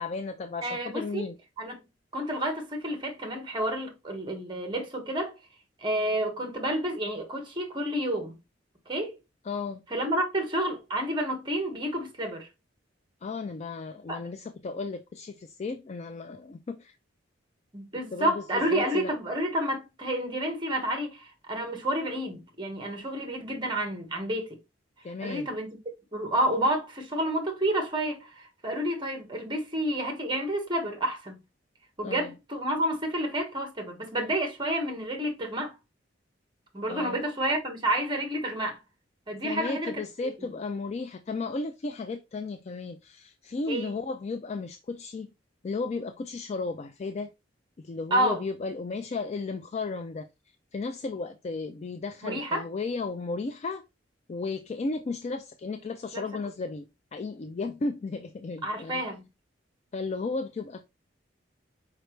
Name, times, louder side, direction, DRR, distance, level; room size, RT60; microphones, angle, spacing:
voice 1, 0.0-1.4 9.4-9.8 13.2-16.9 18.1-19.1 25.0-25.5 32.0-32.3 36.9-37.2 39.4-45.3 45.6-47.3 47.8-50.3 50.7-53.8 54.3-59.0 59.9-60.8, left 3 dB, 35° left, 0.3 m, -34 dB
voice 2, 0.6-1.2 1.6-1.8 2.1-5.3 5.8-8.3 8.9-9.2 9.9-12.5 14.1-14.2 17.7-24.5 25.2-25.7 26.1-31.3 32.0-35.7 36.7-38.8 39.3-40.0 43.7-43.9 48.1-48.4 52.2-52.6 56.1-56.2 58.6-59.2, right 1 dB, 25° right, 1.2 m, -29 dB
4.9 x 3.2 x 3.1 m
head